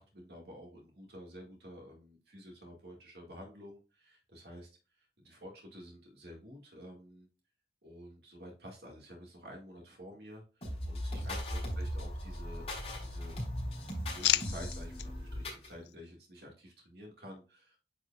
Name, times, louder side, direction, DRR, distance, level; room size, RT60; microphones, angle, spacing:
voice 1, 0.0-4.7 5.0-7.3 7.8-13.4 14.1-17.8, equal, 65° right, 1 dB, 2.0 m, -50 dB
sound 1, 10.6-15.7, equal, 35° left, 4.0 m, -38 dB
sound 2, 11.2-12.3 12.6-13.3 13.7-15.1 15.6-15.9, left 14 dB, 70° left, 0.3 m, -36 dB
9.3 x 4.9 x 2.4 m, 0.33 s
head